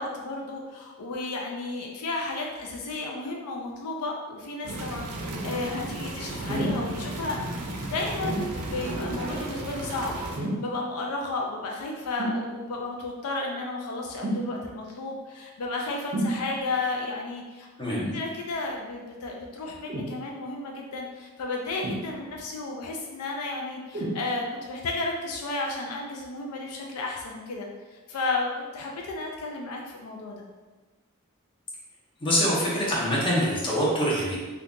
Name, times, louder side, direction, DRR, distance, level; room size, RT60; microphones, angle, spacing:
voice 1, 0.0-7.4 7.8-17.7 18.1-30.4, left 3 dB, 75° left, 0 dB, 0.4 m, -33 dB
sound 1, 4.6-10.4, right 2 dB, 85° right, 0.5 m, -34 dB
sound 2, 6.5-6.8 8.2-8.5 10.3-10.7 12.2-12.4 14.2-14.5 16.1-16.4 17.9-18.2 19.9-20.1 21.8-22.4 23.9-24.2 25.0-25.1, right 1 dB, 35° right, 0.6 m, -29 dB
voice 2, 17.8-18.1 32.2-34.4, equal, 20° left, -6 dB, 0.8 m, -25 dB
2.7 x 2.3 x 3.6 m, 1.3 s
head